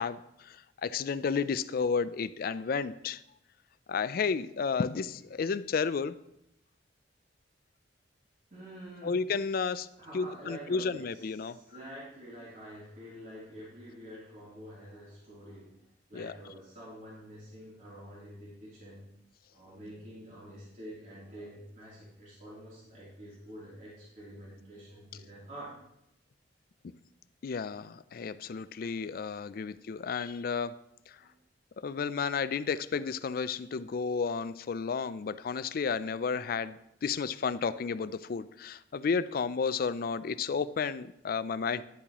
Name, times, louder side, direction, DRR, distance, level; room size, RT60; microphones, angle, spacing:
voice 1, 0.0-3.2 3.9-6.2 9.0-9.9 10.1-11.6 16.1-16.3 27.4-30.7 31.1-31.2 31.8-41.8, left 5 dB, 55° left, 15 dB, 0.4 m, -32 dB
voice 2, 8.5-9.2 10.0-15.8 16.1-19.0 19.5-25.7 29.6-29.7 31.2-31.3, equal, 45° right, -8 dB, 3.1 m, -47 dB
10.5 x 8.4 x 3.0 m, 0.80 s
head